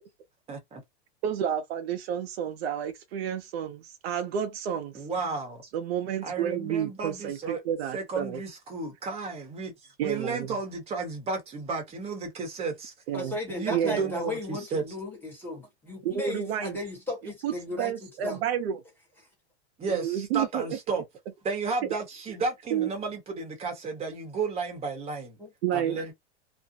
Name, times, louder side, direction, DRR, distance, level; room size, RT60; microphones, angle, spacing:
voice 1, 0.5-0.8 4.9-5.7 6.2-7.6 7.9-12.9 13.5-14.8 19.8-21.0 21.4-25.4 25.7-26.1, right 4 dB, 20° right, 0.9 m, -33 dB
voice 2, 1.2-5.0 5.7-8.4 10.0-10.6 13.1-13.3 13.7-14.1 16.0-16.8 17.4-18.8 19.9-20.6 22.7-22.9 25.6-26.1, right 9 dB, 65° right, 0.6 m, -30 dB
voice 3, 13.1-17.9 18.2-18.4 25.4-25.5, left 1 dB, 5° left, 1.0 m, -35 dB
2.5 x 2.1 x 2.7 m
supercardioid pair, 145°, 34 cm